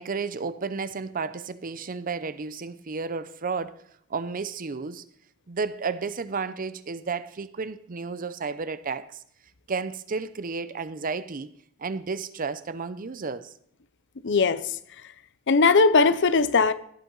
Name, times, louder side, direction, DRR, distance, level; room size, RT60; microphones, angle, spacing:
voice 1, 0.0-3.8 4.1-5.0 5.5-9.2 9.7-11.5 11.8-13.5, right 4 dB, 40° right, 0.6 m, -32 dB
voice 2, 14.2-14.8 15.5-16.7, left 4 dB, 60° left, 0.7 m, -19 dB
16.5 x 8.9 x 4.0 m
head